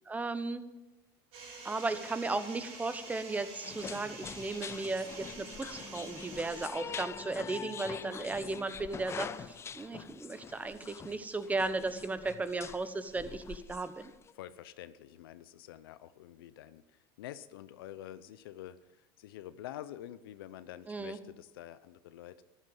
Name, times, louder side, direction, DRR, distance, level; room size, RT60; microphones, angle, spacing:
voice 1, 0.1-0.6 1.6-14.1 20.9-21.2, right 3 dB, 15° right, 12 dB, 1.0 m, -36 dB
sound 1, 1.3-6.7, right 4 dB, 60° right, 6.1 m, -48 dB
sound 2, 3.6-14.3, left 7 dB, 20° left, 0.4 m, -45 dB
voice 2, 14.3-16.8 17.2-22.4, left 12 dB, 90° left, 14 dB, 0.6 m, -47 dB
13.5 x 11.0 x 5.4 m, 1.0 s
supercardioid pair, 115°, 12 cm